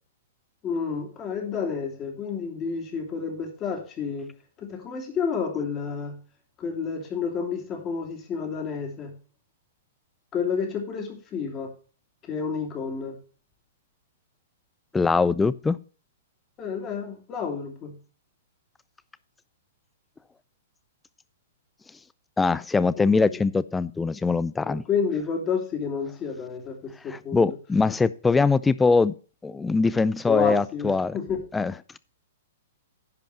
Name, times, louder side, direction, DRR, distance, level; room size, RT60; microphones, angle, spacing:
voice 1, 0.6-4.3 4.6-6.2 6.6-9.1 10.3-11.7 12.3-13.2 16.6-17.9 23.0-23.1 23.3-23.4 24.6-26.8 27.0-27.6 30.3-31.4, left 6 dB, 30° left, 3.0 m, -30 dB
voice 2, 14.9-15.8 22.4-24.8 27.3-29.1 29.4-31.2 31.5-31.7, left 4 dB, 10° left, 0.5 m, -22 dB
10.5 x 5.3 x 6.7 m
hypercardioid pair, 115°, 0 cm